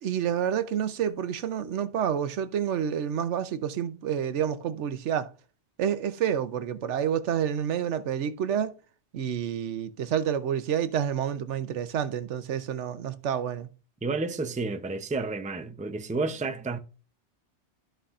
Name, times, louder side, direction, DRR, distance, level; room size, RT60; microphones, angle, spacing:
voice 1, 0.0-5.3 5.8-8.7 9.1-13.7, right 9 dB, 90° right, 1.1 m, -29 dB
voice 2, 14.0-16.8, right 3 dB, 10° right, 0.5 m, -31 dB
14.0 x 5.6 x 2.5 m
omnidirectional pair, 1.2 m